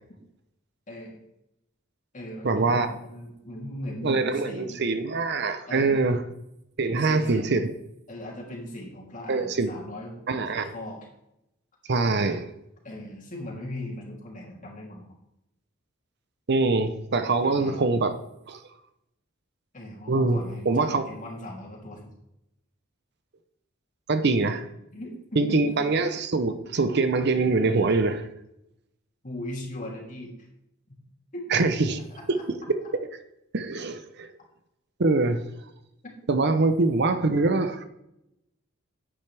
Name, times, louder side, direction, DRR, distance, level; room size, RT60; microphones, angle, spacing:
voice 1, 0.9-1.2 2.1-4.8 5.6-6.2 7.0-7.5 8.1-11.1 12.8-15.2 17.4-17.8 19.7-22.1 24.9-25.9 29.2-30.5 30.9-31.0 31.3-32.4, left 1 dB, 40° left, 3.0 m, -39 dB
voice 2, 2.4-2.9 4.0-6.2 6.8-7.7 9.3-9.7 10.3-10.7 11.9-12.5 16.5-18.1 18.5-18.6 20.1-20.4 20.7-21.0 24.1-24.7 25.4-28.2 31.5-31.9 32.3-32.4 33.5-34.3 35.0-35.4 36.3-37.8, right 3 dB, 50° right, 0.7 m, -24 dB
10.5 x 8.8 x 3.4 m
head